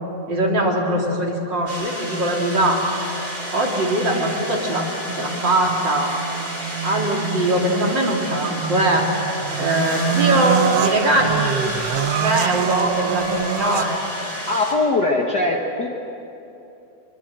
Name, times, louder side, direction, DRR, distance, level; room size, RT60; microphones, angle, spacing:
voice 1, 0.3-6.1 6.8-9.1 9.6-14.0 14.3-14.4, right 1 dB, 40° right, -1 dB, 3.4 m, -21 dB
sound 1, 1.7-14.7, equal, 20° right, 4.1 m, -31 dB
sound 2, 5.1-14.1, right 11 dB, 70° right, 1.6 m, -26 dB
voice 2, 13.6-13.9 14.5-15.9, left 2 dB, 40° left, 0 dB, 1.8 m, -21 dB
25.0 x 23.5 x 7.7 m, 2.9 s
omnidirectional pair, 3.3 m